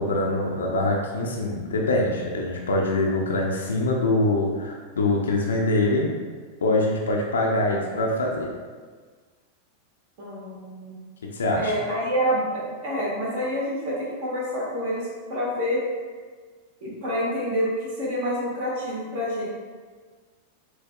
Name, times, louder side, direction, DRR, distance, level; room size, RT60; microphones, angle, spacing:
voice 1, 0.0-6.2 6.6-8.5 11.3-11.7, left 2 dB, 65° left, -1 dB, 0.5 m, -24 dB
voice 2, 10.2-11.0 11.6-15.8 16.8-19.4, equal, 50° right, -6 dB, 1.5 m, -27 dB
6.9 x 2.6 x 2.2 m, 1.5 s
figure-of-eight pair, 90°, 0 cm